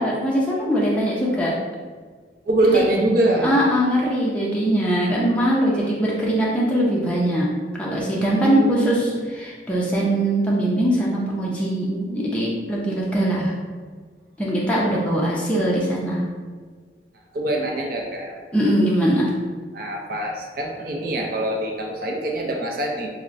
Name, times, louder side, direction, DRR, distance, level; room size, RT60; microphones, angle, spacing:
voice 1, 0.0-1.5 2.6-2.8 3.4-7.5 7.8-13.5 14.4-16.2 18.5-19.3, right 1 dB, 5° left, -5 dB, 0.5 m, -21 dB
voice 2, 2.5-3.5 8.4-9.3 14.8-14.9 17.3-18.4 19.7-23.1, right 1 dB, 55° right, 0 dB, 0.6 m, -24 dB
5.7 x 2.1 x 2.5 m, 1.5 s
head